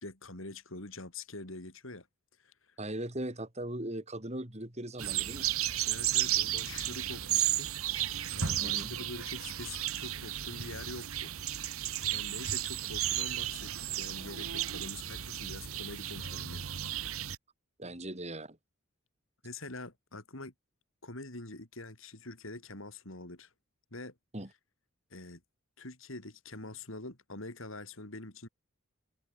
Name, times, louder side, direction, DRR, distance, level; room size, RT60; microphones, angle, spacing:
voice 1, 0.0-2.1 2.4-2.5 5.9-7.7 8.4-11.3 12.1-16.7 19.4-20.5 21.0-23.5 23.9-24.1 25.1-25.4 25.8-28.5, left 2 dB, 65° left, 3.9 m, -45 dB
voice 2, 2.8-5.5 8.6-8.9 17.8-18.6 24.3-24.5, right 1 dB, 30° right, 3.7 m, -39 dB
sound 1, 5.0-17.4, right 12 dB, 80° right, 1.5 m, -33 dB
head